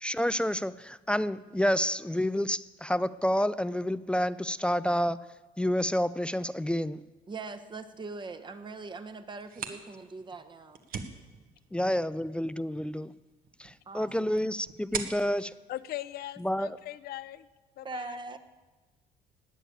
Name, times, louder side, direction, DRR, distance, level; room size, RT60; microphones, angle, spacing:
voice 1, 0.0-5.2 5.6-7.0 11.7-13.1 13.6-15.5 16.4-16.8, equal, 5° left, 0.3 m, -29 dB
voice 2, 7.3-10.8 13.9-14.4 17.8-18.4, right 3 dB, 25° right, 1.1 m, -41 dB
sound 1, 9.3-16.8, right 6 dB, 60° right, 1.4 m, -44 dB
voice 3, 15.7-17.5 17.8-18.2, left 14 dB, 70° left, 0.7 m, -40 dB
19.0 x 7.0 x 8.5 m
cardioid pair, 110°, 17 cm